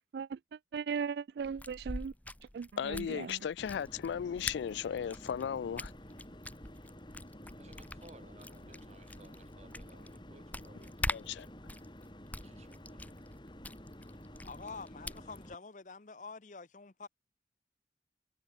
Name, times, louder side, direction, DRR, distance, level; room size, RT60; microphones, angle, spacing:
voice 1, 0.7-2.1 2.5-3.4, right 6 dB, 65° right, 0.3 m, -37 dB
sound 1, 1.4-15.5, left 1 dB, 10° left, 1.6 m, -45 dB
voice 2, 2.8-5.9 11.1-11.5, left 8 dB, 80° left, 0.3 m, -36 dB
sound 2, 3.6-15.6, equal, 25° left, 4.6 m, -51 dB
voice 3, 7.6-11.3 12.4-13.0, right 2 dB, 40° right, 3.2 m, -59 dB
voice 4, 14.1-17.1, left 4 dB, 45° left, 0.8 m, -47 dB
head